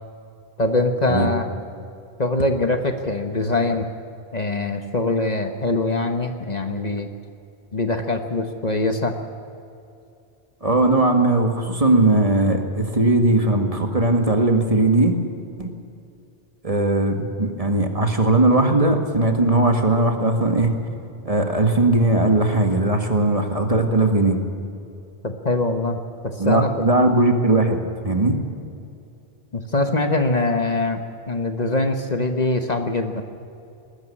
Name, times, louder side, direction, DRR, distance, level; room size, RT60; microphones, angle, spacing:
voice 1, 0.6-1.5 2.2-3.9 4.3-7.1 7.7-9.1 25.2-26.7 29.5-33.2, left 2 dB, 40° left, 6 dB, 1.2 m, -23 dB
voice 2, 10.6-15.1 15.6-15.7 16.6-20.7 21.3-24.4 26.4-27.8 28.0-28.4, right 2 dB, 35° right, 4 dB, 1.9 m, -19 dB
20.5 x 13.5 x 9.8 m, 2.6 s
omnidirectional pair, 1.1 m